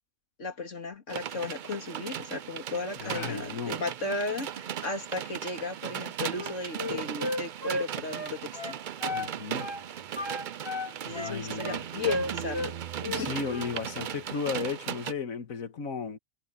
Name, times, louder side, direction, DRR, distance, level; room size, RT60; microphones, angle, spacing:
voice 1, 0.4-8.5 11.1-12.7 13.0-13.3, left 3 dB, 60° left, 3.1 m, -35 dB
sound 1, 1.1-15.1, right 9 dB, 60° right, 0.5 m, -37 dB
voice 2, 3.0-3.8 9.1-9.7 11.1-11.9 13.1-16.2, left 5 dB, 80° left, 1.9 m, -35 dB
Wind instrument woodwind instrument, 6.3-9.3 9.6-9.8 10.1-12.7 13.0-13.7, left 2 dB, 20° left, 2.1 m, -34 dB
omnidirectional pair, 1.4 m